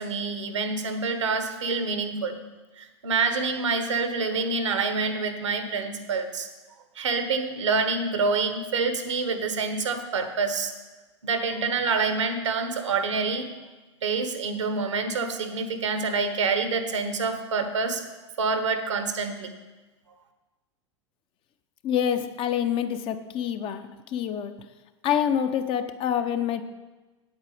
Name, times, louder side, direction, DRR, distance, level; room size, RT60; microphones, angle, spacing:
voice 1, 0.0-2.4 2.8-6.5 7.0-10.7 11.2-13.5 14.0-18.0 18.4-19.5, right 4 dB, 75° right, 8 dB, 1.2 m, -27 dB
voice 2, 21.8-24.5 25.0-26.6, left 9 dB, 35° left, 9 dB, 0.7 m, -26 dB
8.9 x 8.1 x 5.0 m, 1.2 s
figure-of-eight pair, 90°, 16 cm